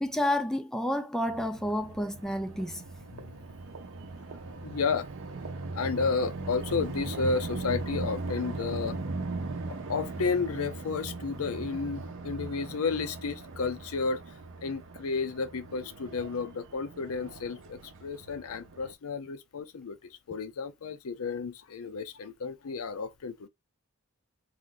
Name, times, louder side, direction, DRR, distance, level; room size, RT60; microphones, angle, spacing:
voice 1, 0.0-2.8, left 1 dB, ahead, 0.4 m, -30 dB
sound 1, 1.2-18.9, right 3 dB, 60° right, 0.7 m, -39 dB
voice 2, 4.6-5.1 5.7-9.0 9.7-14.2 14.6-23.5, left 4 dB, 70° left, 0.5 m, -32 dB
3.0 x 2.5 x 3.8 m
head